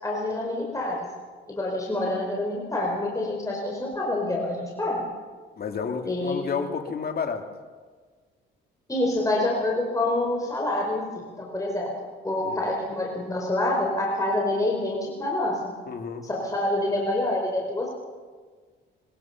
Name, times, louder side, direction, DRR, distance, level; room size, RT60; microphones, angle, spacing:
voice 1, 0.0-1.0 1.5-5.0 6.1-6.5 8.9-11.9 12.2-15.7 16.2-17.9, left 1 dB, 15° left, -2 dB, 4.7 m, -27 dB
voice 2, 5.6-7.4 12.4-12.6 15.9-16.3, left 6 dB, 50° left, 4 dB, 2.6 m, -31 dB
21.5 x 21.5 x 5.9 m, 1.5 s
cardioid pair, 90°, 20 cm